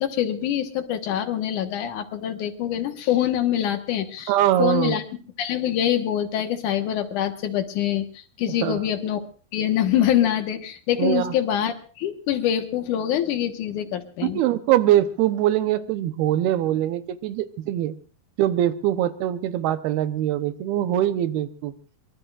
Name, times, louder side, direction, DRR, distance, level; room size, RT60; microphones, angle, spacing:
voice 1, 0.0-4.3 4.6-5.0 5.4-9.3 9.5-14.4, left 10 dB, 65° left, 7 dB, 2.6 m, -25 dB
voice 2, 4.3-5.0 8.6-8.8 11.0-11.3 14.2-18.0 18.4-21.7, right 12 dB, 85° right, 11 dB, 2.9 m, -22 dB
24.0 x 23.5 x 2.5 m, 0.39 s
omnidirectional pair, 4.4 m